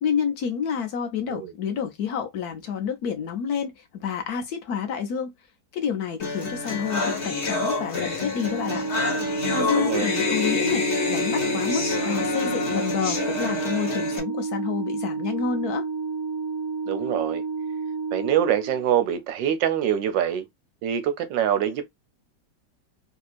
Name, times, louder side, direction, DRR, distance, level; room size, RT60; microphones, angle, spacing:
voice 1, 0.0-5.3 5.7-8.8 9.5-15.9, left 7 dB, 65° left, 1.1 m, -29 dB
sound 1, 6.2-14.2, left 3 dB, 40° left, 1.5 m, -27 dB
Organ, 8.3-19.2, right 4 dB, 55° right, 1.2 m, -31 dB
voice 2, 9.6-10.1 16.9-17.4 18.1-20.4 20.8-21.9, right 10 dB, 80° right, 1.4 m, -25 dB
3.4 x 2.8 x 2.4 m
omnidirectional pair, 2.0 m